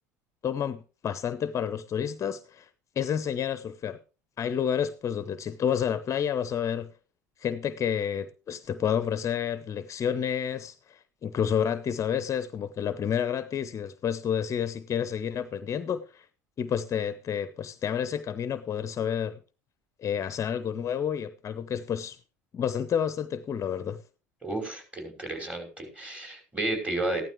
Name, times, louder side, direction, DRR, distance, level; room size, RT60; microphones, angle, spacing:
voice 1, 0.4-2.7 3.0-4.0 4.4-6.9 7.4-16.3 16.6-19.4 20.0-22.2 22.5-24.0, left 8 dB, 35° left, 0.8 m, -30 dB
voice 2, 24.4-27.2, right 2 dB, 10° right, 5.7 m, -32 dB
15.0 x 12.5 x 3.2 m
hypercardioid pair, 70°, 9 cm